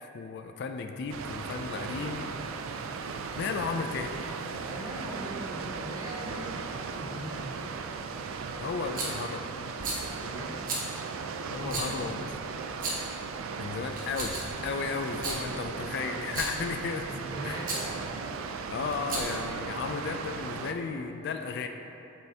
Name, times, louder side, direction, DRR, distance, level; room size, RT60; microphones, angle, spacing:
voice 1, 0.0-2.3 3.3-4.1 8.6-9.5 11.5-12.3 13.6-17.1 17.4-17.7 18.7-21.7, left 5 dB, 55° left, 6 dB, 0.3 m, -34 dB
Water, 1.1-20.7, right 5 dB, 80° right, 0.4 m, -37 dB
voice 2, 4.6-7.6 10.0-10.6 11.4-12.3 15.4-15.8 17.0-18.0, right 1 dB, 20° right, -3 dB, 0.8 m, -41 dB
Rattle, 8.9-9.2 9.8-10.1 10.7-10.9 11.7-11.9 12.7-13.1 13.9-14.6 15.1-15.4 16.2-16.6 17.6-17.9 18.9-19.5, right 2 dB, 45° right, 1.0 m, -34 dB
7.4 x 5.5 x 2.7 m, 2.8 s
head